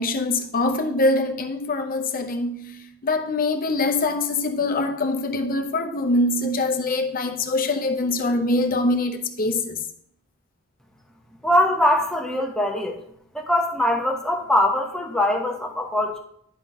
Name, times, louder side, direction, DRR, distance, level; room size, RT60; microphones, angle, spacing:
voice 1, 0.0-9.9, left 2 dB, 45° left, 0.8 m, -24 dB
voice 2, 11.4-13.0 13.3-16.2, left 1 dB, 5° left, 0.9 m, -22 dB
11.0 x 3.7 x 3.6 m
head